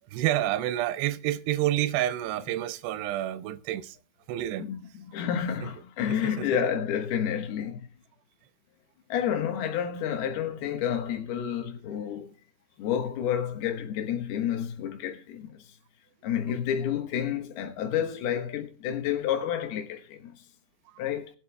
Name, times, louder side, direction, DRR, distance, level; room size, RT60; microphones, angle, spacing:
voice 1, 0.1-4.0 4.3-4.7 5.6-5.7 6.1-6.6 20.9-21.0, right 13 dB, 85° right, 2.8 m, -29 dB
voice 2, 4.6-7.9 9.1-12.3 12.8-15.6 16.2-20.3 21.0-21.3, left 9 dB, 75° left, 3.1 m, -30 dB
22.0 x 8.0 x 2.2 m
omnidirectional pair, 4.7 m